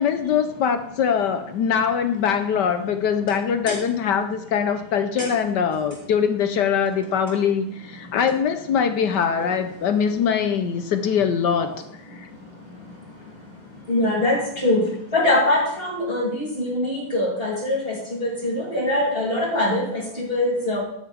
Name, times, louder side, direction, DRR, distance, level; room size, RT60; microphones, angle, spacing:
voice 1, 0.0-11.7 12.1-12.3, left 7 dB, 70° left, 9 dB, 1.1 m, -22 dB
voice 2, 12.1-20.8, left 1 dB, 25° left, -4 dB, 3.3 m, -24 dB
11.5 x 9.7 x 3.4 m, 0.78 s
omnidirectional pair, 2.3 m